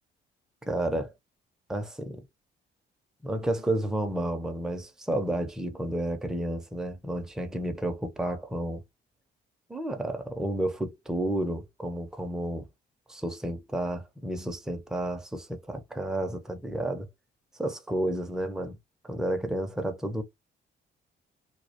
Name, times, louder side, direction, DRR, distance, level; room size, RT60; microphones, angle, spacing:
voice 1, 0.7-1.1 1.7-2.2 3.2-8.8 9.7-12.7 13.1-17.1 17.6-18.8 19.0-20.2, right 1 dB, 5° right, 0.4 m, -31 dB
2.2 x 2.1 x 2.7 m
cardioid pair, 90°, 20 cm